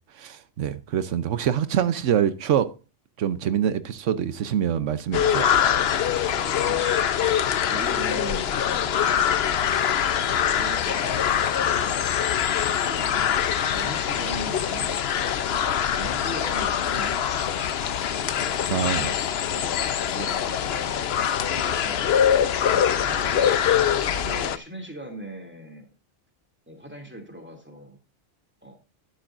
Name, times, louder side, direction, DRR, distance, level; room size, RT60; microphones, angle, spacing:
voice 1, 0.2-2.7 3.2-5.5 18.7-19.1, right 9 dB, 85° right, 1.1 m, -25 dB
sound 1, 5.1-24.6, left 9 dB, 60° left, 0.9 m, -24 dB
voice 2, 6.2-9.5 10.1-12.1 12.9-13.4 13.7-15.0 15.8-17.8 18.2-18.9 19.5-22.2 22.7-23.7 24.2-25.9 26.7-28.0 28.6-28.8, right 1 dB, 10° right, 2.6 m, -40 dB
11.5 x 11.5 x 2.5 m
omnidirectional pair, 1.2 m